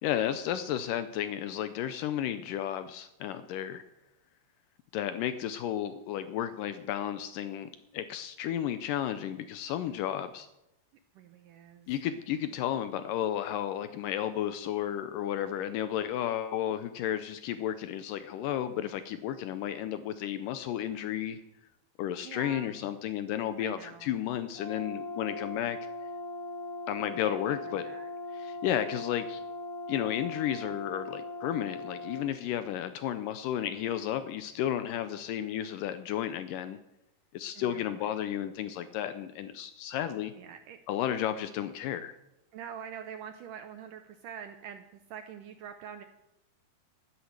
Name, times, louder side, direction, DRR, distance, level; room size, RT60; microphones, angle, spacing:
voice 1, 0.0-3.8 4.9-10.5 11.9-21.4 22.0-25.8 26.9-27.9 28.3-29.4 29.9-36.8 37.3-40.3 40.9-42.1, left 11 dB, 85° left, 11 dB, 1.9 m, -33 dB
voice 2, 11.2-11.9 22.2-22.7 23.6-24.2 27.2-28.1 37.6-38.0 40.3-40.8 42.5-46.0, right 8 dB, 80° right, 7 dB, 1.9 m, -45 dB
Brass instrument, 24.5-32.3, left 2 dB, 65° left, 4.6 m, -39 dB
12.5 x 11.5 x 6.6 m, 0.87 s
omnidirectional pair, 4.6 m